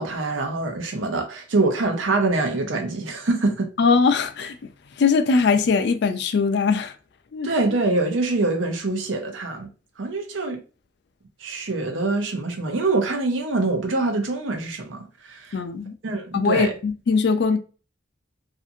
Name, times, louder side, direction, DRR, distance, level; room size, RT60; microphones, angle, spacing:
voice 1, 0.0-3.7 7.4-9.7 10.0-10.6 11.4-15.0 15.3-15.6 16.0-16.7, right 2 dB, 85° right, 0.7 m, -24 dB
voice 2, 3.8-4.6 5.0-6.9 7.3-7.5 15.5-15.9 16.3-17.6, left 5 dB, 60° left, 0.4 m, -21 dB
2.6 x 2.5 x 2.6 m
head